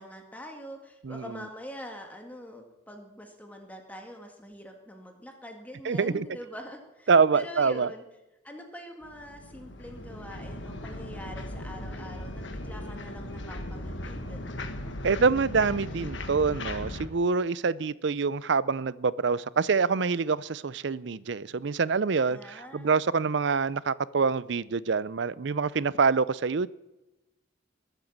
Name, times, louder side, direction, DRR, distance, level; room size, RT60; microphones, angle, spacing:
voice 1, 0.0-8.0 8.4-14.7 22.3-23.0, equal, 10° left, 2.0 m, -44 dB
voice 2, 5.8-6.3 7.1-7.9 15.0-26.7, right 5 dB, 60° right, 0.5 m, -26 dB
sound 1, 9.0-17.1, left 1 dB, 65° left, 1.6 m, -38 dB
21.0 x 9.1 x 7.3 m
head